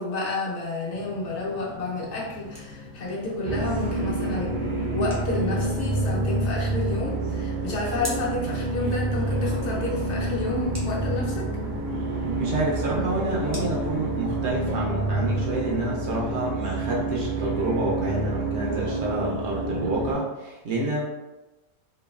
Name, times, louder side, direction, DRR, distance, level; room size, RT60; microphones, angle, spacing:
voice 1, 0.0-4.5 4.9-11.5, left 2 dB, 65° left, -4 dB, 0.9 m, -30 dB
sound 1, 0.9-14.7, left 2 dB, 90° left, 1.0 m, -44 dB
sound 2, 2.1-14.5, equal, 20° right, 0.5 m, -47 dB
sound 3, 3.4-20.1, right 2 dB, 80° right, 0.4 m, -28 dB
voice 2, 12.4-21.0, right 2 dB, 65° right, -3 dB, 0.8 m, -28 dB
3.0 x 2.2 x 2.3 m, 1.0 s
omnidirectional pair, 1.4 m